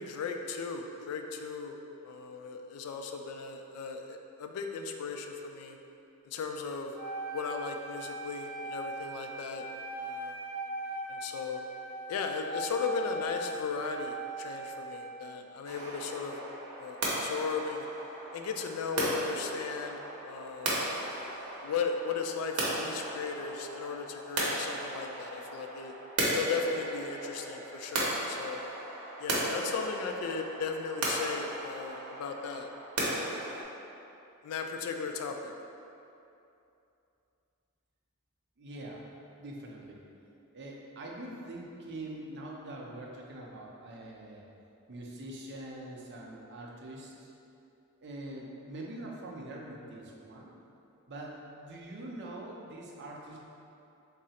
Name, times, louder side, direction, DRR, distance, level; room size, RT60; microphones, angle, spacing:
voice 1, 0.0-1.8 2.0-5.8 6.3-6.9 7.3-9.7 10.0-10.4 11.1-11.6 12.1-16.4 16.8-17.9 18.3-20.9 21.6-25.9 26.3-28.6 29.2-32.7 33.1-33.2 34.4-35.5, left 5 dB, 85° left, 9 dB, 0.3 m, -36 dB
Wind instrument woodwind instrument, 6.9-15.2, right 1 dB, 40° left, 0.6 m, -40 dB
sound 1, 15.7-33.6, right 1 dB, 90° right, 0.7 m, -36 dB
voice 2, 38.6-39.1 39.4-40.0 40.5-44.4 44.9-47.3 48.0-50.5 51.1-53.4, right 1 dB, 50° right, -2 dB, 0.5 m, -44 dB
3.6 x 2.0 x 4.1 m, 2.8 s
head